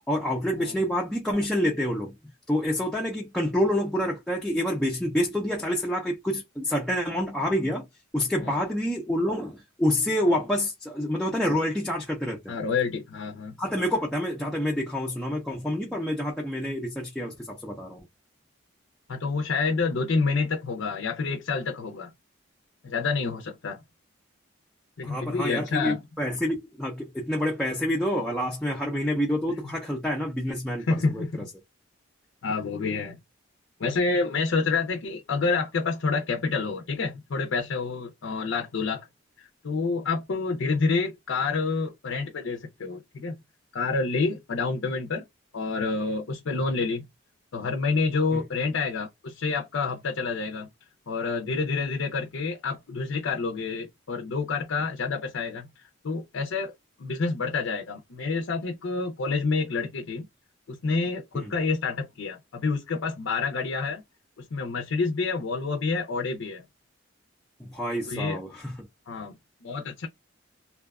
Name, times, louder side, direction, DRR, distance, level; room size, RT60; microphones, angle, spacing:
voice 1, 0.1-2.1 2.5-7.9 8.1-12.6 13.6-18.1 25.0-31.5 48.3-48.4 61.3-61.5 67.6-68.8, equal, 5° left, 0.3 m, -27 dB
voice 2, 12.5-13.5 19.1-22.1 22.8-23.8 25.0-26.0 30.9-31.5 32.4-33.2 33.8-39.1 39.4-43.4 43.7-45.2 45.5-47.0 47.5-50.7 51.1-56.7 57.0-60.3 60.7-64.0 64.4-66.6 68.1-68.4 69.1-69.3 69.6-70.1, left 4 dB, 70° left, 0.5 m, -28 dB
2.6 x 2.2 x 2.3 m
head